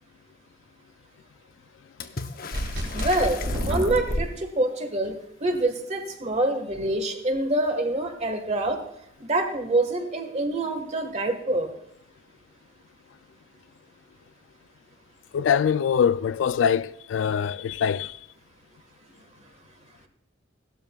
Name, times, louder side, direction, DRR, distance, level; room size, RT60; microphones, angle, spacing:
Water / Splash splatter, 2.0-4.4 7.7-7.8 8.0-8.8 9.9-10.0, left 5 dB, 50° left, 0.8 m, -38 dB
sound 1, 2.5-4.2, equal, 90° right, 4.8 m, -28 dB
voice 1, 2.9-3.4 3.6-8.8 9.2-11.7, right 2 dB, 35° right, 1.5 m, -26 dB
voice 2, 15.3-18.2, left 7 dB, 70° left, 0.3 m, -23 dB
17.0 x 12.5 x 2.3 m
head